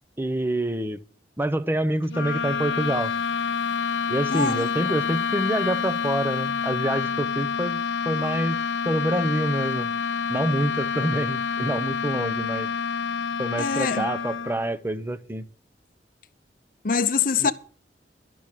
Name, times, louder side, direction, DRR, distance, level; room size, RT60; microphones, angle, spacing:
voice 1, 0.2-1.0 1.4-3.1 4.1-8.6 8.8-9.9 10.3-12.7 13.4-15.5 17.4-17.5, right 1 dB, 15° right, 0.7 m, -27 dB
sound 1, 2.1-14.8, left 6 dB, 80° left, 1.1 m, -28 dB
voice 2, 4.3-5.0 13.6-14.1 16.8-17.5, left 5 dB, 50° left, 0.7 m, -24 dB
12.0 x 6.2 x 8.5 m
head